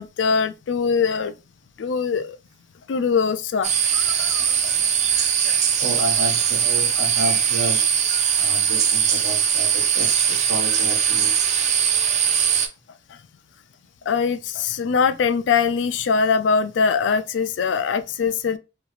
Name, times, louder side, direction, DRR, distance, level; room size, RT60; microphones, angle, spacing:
voice 1, 0.0-1.3 1.8-2.4 2.9-4.5 14.1-18.6, left 5 dB, 70° left, 0.4 m, -22 dB
sound 1, 3.6-12.7, right 8 dB, 40° right, 0.4 m, -20 dB
voice 2, 5.8-7.9 8.4-11.3, right 1 dB, 85° right, 0.8 m, -30 dB
2.6 x 2.4 x 3.0 m
head